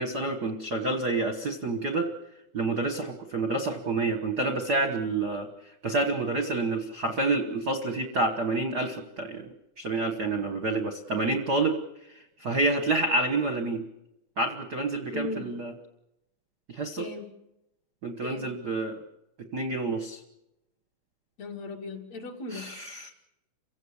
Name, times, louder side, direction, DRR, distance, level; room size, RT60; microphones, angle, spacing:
voice 1, 0.0-2.1 2.5-5.5 5.8-11.8 12.1-13.8 14.4-15.7 16.7-17.1 18.0-19.0 19.5-20.2 22.5-23.1, right 2 dB, 55° right, 7 dB, 1.1 m, -28 dB
voice 2, 15.1-15.5 17.0-17.2 18.2-18.5 21.4-22.7, left 3 dB, 55° left, 2 dB, 3.5 m, -37 dB
28.5 x 16.5 x 7.2 m, 0.90 s
omnidirectional pair, 3.7 m